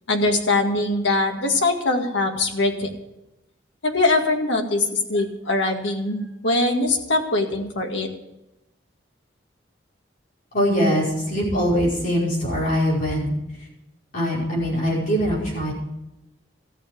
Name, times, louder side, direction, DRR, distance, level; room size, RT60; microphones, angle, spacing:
voice 1, 0.1-2.9 3.8-8.1, left 2 dB, 85° left, 2 dB, 2.1 m, -22 dB
voice 2, 10.5-13.7 14.1-15.7, equal, 45° left, -6 dB, 5.4 m, -22 dB
14.0 x 7.2 x 9.4 m, 0.89 s
head